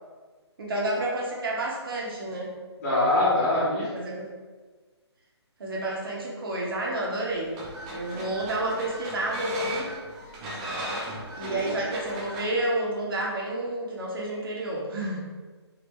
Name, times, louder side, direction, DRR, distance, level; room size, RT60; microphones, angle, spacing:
voice 1, 0.6-2.5 3.9-4.3 5.6-7.6 7.9-9.9 11.4-15.2, right 1 dB, 55° right, -3 dB, 0.8 m, -30 dB
voice 2, 2.8-3.9 11.4-11.8, left 2 dB, 35° left, -8 dB, 1.3 m, -24 dB
sound 1, 7.3-12.5, equal, 15° right, 0.5 m, -35 dB
3.5 x 2.0 x 3.0 m, 1.4 s
figure-of-eight pair, 145°, 15 cm